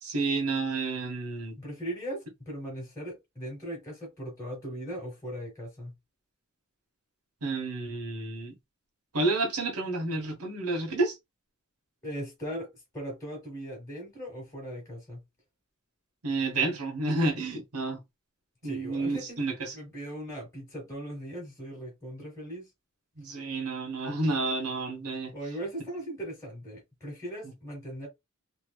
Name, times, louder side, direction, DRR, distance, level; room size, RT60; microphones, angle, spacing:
voice 1, 0.0-1.6 7.4-8.5 9.1-11.2 16.2-18.0 18.6-19.7 23.2-25.3, right 3 dB, 85° right, 1.1 m, -30 dB
voice 2, 1.6-5.9 12.0-12.7 12.9-15.2 18.6-19.4 19.7-22.7 25.3-28.1, equal, 15° left, 1.5 m, -39 dB
3.0 x 2.8 x 2.3 m
head